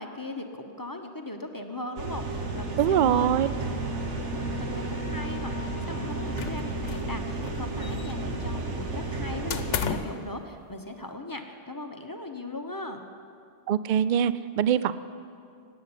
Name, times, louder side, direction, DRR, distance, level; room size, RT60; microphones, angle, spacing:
voice 1, 0.0-3.4 4.6-13.0, left 2 dB, 20° left, 4 dB, 0.9 m, -38 dB
sound 1, 2.0-9.8, right 2 dB, 75° right, 1.7 m, -32 dB
voice 2, 2.8-3.5 13.7-14.9, right 9 dB, 55° right, 15 dB, 0.5 m, -23 dB
sound 2, 6.4-7.2 7.4-8.4 9.5-10.2, left 6 dB, 75° left, 1.1 m, -33 dB
16.5 x 8.8 x 9.8 m, 2.4 s
omnidirectional pair, 1.2 m